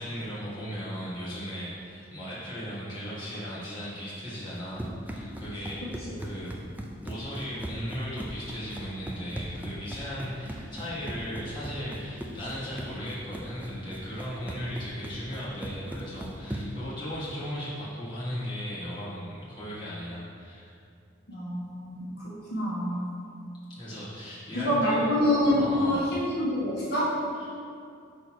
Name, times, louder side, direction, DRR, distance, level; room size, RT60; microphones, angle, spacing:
voice 1, 0.0-6.5 7.0-20.7 23.8-25.0 25.6-26.1 27.3-27.5, equal, 25° left, -10 dB, 1.7 m, -37 dB
Run, 4.4-16.9, equal, 10° right, 0.4 m, -39 dB
voice 2, 21.3-22.0 22.5-23.1 24.5-27.2, left 1 dB, 55° left, -8 dB, 1.6 m, -26 dB
5.2 x 4.4 x 6.2 m, 2.4 s
head